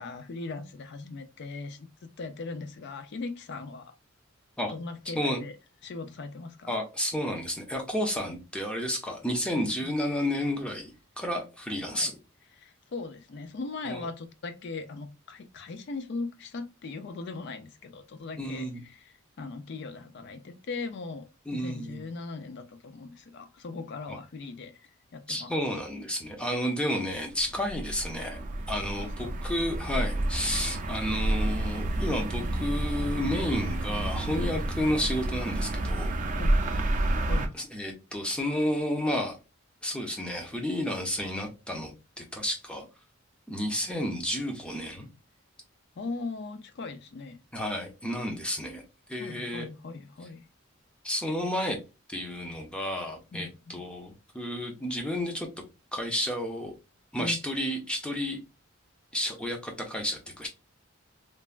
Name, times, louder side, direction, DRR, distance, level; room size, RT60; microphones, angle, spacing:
voice 1, 0.0-3.9 4.7-5.5 5.8-6.8 9.6-9.9 11.9-12.1 12.6-25.6 28.8-29.4 36.4-36.6 37.2-37.5 46.0-47.4 49.2-50.4 53.3-53.8 57.2-57.4, left 3 dB, 55° left, 0.4 m, -39 dB
voice 2, 6.7-12.2 13.8-14.1 18.4-18.8 21.5-22.0 24.1-24.2 25.3-28.4 28.7-36.1 37.5-39.4 39.8-42.9 43.5-45.1 47.5-48.8 49.1-49.7 51.0-51.8 52.1-55.5 55.9-56.7 57.1-58.4 59.1-60.5, equal, 5° left, 0.6 m, -31 dB
sound 1, 27.2-37.5, right 1 dB, 40° right, 0.4 m, -30 dB
3.2 x 2.1 x 2.4 m
head